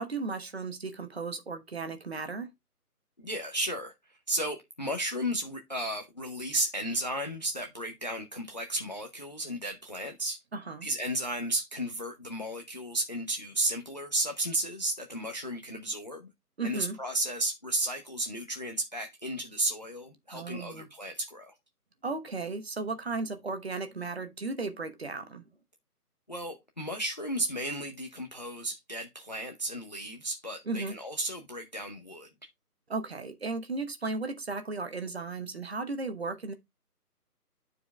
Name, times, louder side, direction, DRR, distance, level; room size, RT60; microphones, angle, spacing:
voice 1, 0.0-2.5 10.5-10.9 16.6-17.0 20.3-20.9 22.0-25.4 30.7-31.0 32.9-36.5, right 3 dB, 40° right, 1.1 m, -35 dB
voice 2, 3.2-10.4 10.8-16.3 16.6-21.5 26.3-32.3, right 1 dB, 30° left, 0.7 m, -34 dB
9.5 x 4.8 x 3.3 m
figure-of-eight pair, 160°, 47 cm